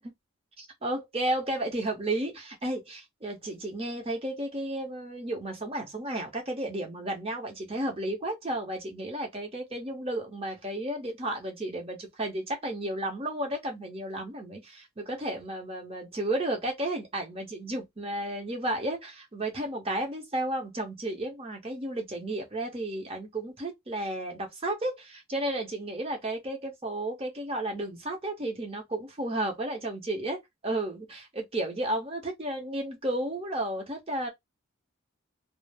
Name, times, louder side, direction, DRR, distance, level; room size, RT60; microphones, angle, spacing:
voice 1, 0.6-34.3, right 1 dB, 30° right, 0.8 m, -33 dB
2.4 x 2.0 x 3.4 m
head